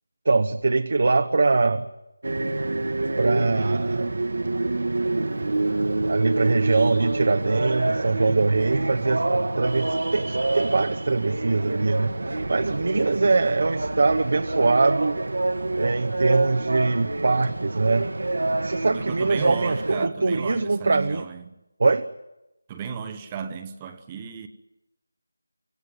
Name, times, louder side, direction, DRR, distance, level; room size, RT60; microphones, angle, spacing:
voice 1, 0.2-1.9 3.2-4.2 6.1-12.1 12.5-15.2 15.8-18.1 18.6-21.3 21.8-22.1, right 3 dB, 50° right, 0.9 m, -23 dB
sound 1, 2.2-20.1, right 2 dB, 70° right, 1.6 m, -27 dB
voice 2, 18.8-21.5 22.7-24.5, right 6 dB, 15° right, 1.0 m, -34 dB
25.0 x 16.5 x 9.5 m
figure-of-eight pair, 170°, 0 cm